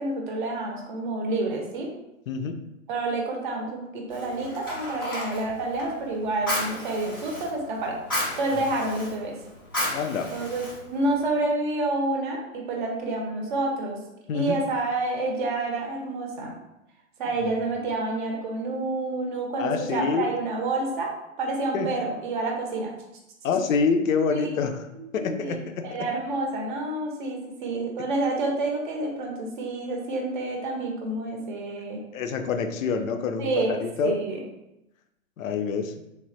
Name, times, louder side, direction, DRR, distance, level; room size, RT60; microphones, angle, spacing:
voice 1, 0.0-1.9 2.9-9.4 10.3-14.0 14.3-16.6 17.2-21.1 21.4-22.9 24.3-24.5 24.9-32.0 33.4-34.4, right 2 dB, 35° right, 1 dB, 0.6 m, -29 dB
voice 2, 2.3-2.6 9.9-10.3 14.3-14.6 19.6-20.3 21.7-21.9 23.4-24.7 25.1-25.6 32.1-34.1 35.4-35.9, left 5 dB, 70° left, 7 dB, 0.5 m, -26 dB
Fire, 4.1-11.3, left 1 dB, 20° left, 0.3 m, -34 dB
3.3 x 2.1 x 2.6 m, 0.90 s
hypercardioid pair, 135°, 41 cm